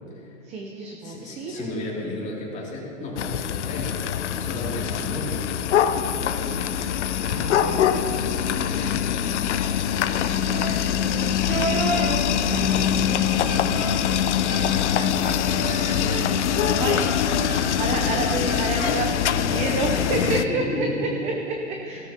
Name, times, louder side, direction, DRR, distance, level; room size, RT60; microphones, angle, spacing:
voice 1, 0.5-1.7 6.1-6.2 7.1-7.9 11.6-11.7 16.8-17.0 17.8-22.1, right 3 dB, 15° right, 2 dB, 0.7 m, -29 dB
voice 2, 1.0-10.9 11.3-12.9 13.2-13.7 20.2-21.2 21.9-22.1, left 2 dB, 20° left, -4 dB, 2.8 m, -35 dB
sound 1, 3.2-20.4, left 9 dB, 60° left, 0.7 m, -23 dB
sound 2, 10.5-19.6, right 3 dB, 70° right, 1.1 m, -33 dB
17.0 x 13.0 x 2.9 m, 2.7 s
hypercardioid pair, 130°, 40 cm